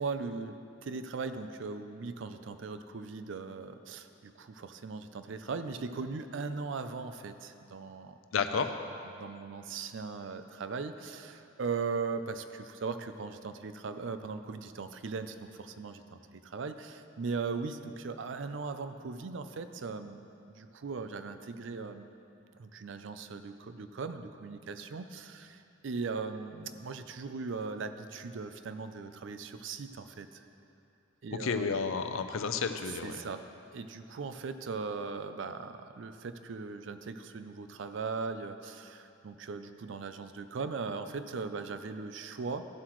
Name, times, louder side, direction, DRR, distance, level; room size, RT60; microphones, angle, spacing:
voice 1, 0.0-8.2 9.1-20.2 20.5-22.1 22.6-30.4 31.2-31.8 33.0-33.5 33.7-42.7, right 4 dB, 65° right, 10 dB, 0.4 m, -39 dB
voice 2, 8.3-8.7 31.4-33.2, left 5 dB, 80° left, 8 dB, 0.5 m, -31 dB
13.5 x 7.6 x 3.1 m, 2.7 s
head